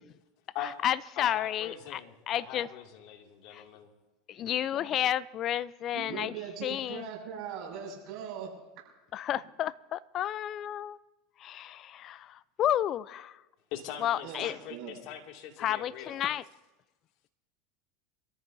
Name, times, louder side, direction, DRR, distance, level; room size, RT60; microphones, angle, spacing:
voice 1, 0.6-2.0 2.3-2.7 3.5-3.6 4.3-6.3 6.6-7.1 9.1-11.0 11.4-13.4 14.0-14.5 15.6-16.4, left 11 dB, 45° left, 18 dB, 0.5 m, -31 dB
voice 2, 1.2-3.9 13.7-16.2, left 9 dB, 60° left, 2 dB, 2.3 m, -42 dB
voice 3, 5.9-8.5 14.2-15.0, right 8 dB, 55° right, -3 dB, 6.5 m, -40 dB
26.0 x 14.0 x 2.7 m, 1.1 s
hypercardioid pair, 90°, 0 cm